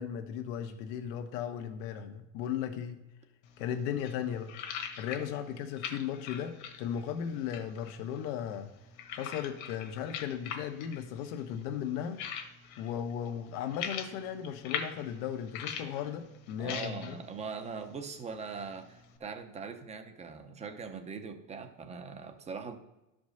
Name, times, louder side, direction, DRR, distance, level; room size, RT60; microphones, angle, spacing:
voice 1, 0.0-3.0 3.6-4.5 5.0-8.7 9.1-12.2 12.8-17.2, left 9 dB, 85° left, 6 dB, 1.3 m, -36 dB
sound 1, 3.4-19.2, left 8 dB, 55° left, 1.4 m, -44 dB
voice 2, 16.6-22.8, right 5 dB, 15° right, 7 dB, 0.7 m, -41 dB
12.0 x 5.1 x 6.4 m, 0.96 s
cardioid pair, 175°, 46 cm